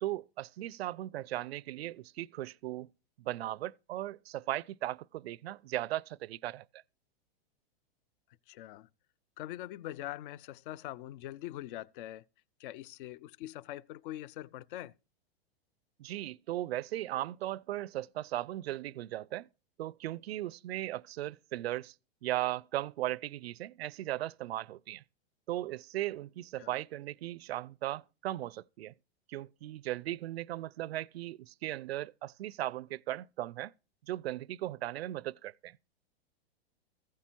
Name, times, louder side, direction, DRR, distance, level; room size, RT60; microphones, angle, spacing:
voice 1, 0.0-2.9 3.2-6.8 16.0-19.5 19.8-21.9 22.2-25.0 25.5-28.9 29.3-33.7 34.1-35.8, right 15 dB, 85° right, 0.5 m, -37 dB
voice 2, 8.5-8.9 9.4-12.2 12.6-14.9 26.6-26.7, left 14 dB, 55° left, 0.5 m, -43 dB
15.0 x 8.4 x 4.5 m
supercardioid pair, 140°, 30 cm